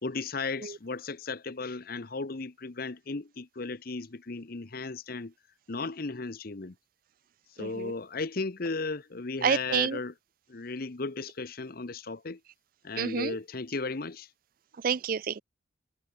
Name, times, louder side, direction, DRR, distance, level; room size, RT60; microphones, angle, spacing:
voice 1, 0.0-5.3 5.7-6.7 7.6-10.1 10.5-12.4 12.8-14.3, left 3 dB, 50° left, 0.9 m, -35 dB
voice 2, 7.6-7.9 9.4-10.0 13.0-13.4 14.8-15.4, right 7 dB, 50° right, 0.4 m, -29 dB
head